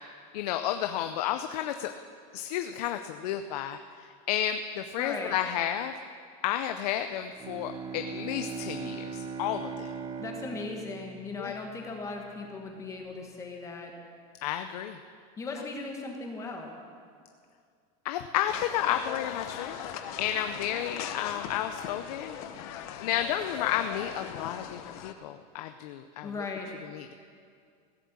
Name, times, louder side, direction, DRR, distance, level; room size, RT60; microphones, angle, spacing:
voice 1, 0.3-1.9 2.3-5.9 6.4-9.9 11.4-11.5 14.4-15.0 18.0-19.8 20.2-22.4 23.0-26.3 26.9-27.1, left 11 dB, 85° left, 7 dB, 0.6 m, -32 dB
voice 2, 5.0-5.3 10.2-13.9 15.4-16.7 26.2-26.7, left 3 dB, 15° left, 1 dB, 1.4 m, -37 dB
Bowed string instrument, 7.3-12.1, right 6 dB, 20° right, 0.5 m, -39 dB
sound 1, 18.5-25.1, left 9 dB, 65° left, 0.9 m, -40 dB
16.0 x 7.4 x 7.2 m, 2.2 s
supercardioid pair, 165°, 19 cm